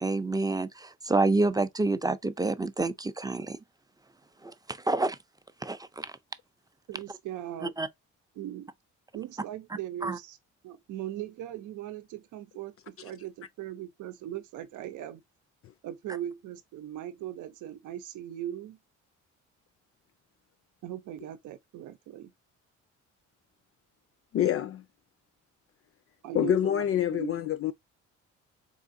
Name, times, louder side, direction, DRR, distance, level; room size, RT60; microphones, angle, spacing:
voice 1, 0.0-3.6 4.7-5.2 5.6-6.1 7.8-7.9 10.0-10.2, right 2 dB, 15° right, 0.4 m, -28 dB
voice 2, 6.9-7.7 8.4-8.7 9.1-10.4 10.6-15.2 15.8-18.8 20.8-22.3 26.2-27.5, right 12 dB, 85° right, 0.7 m, -39 dB
voice 3, 24.3-24.8 26.3-27.7, left 10 dB, 50° left, 0.4 m, -26 dB
3.7 x 3.6 x 2.6 m
cardioid pair, 90°, 30 cm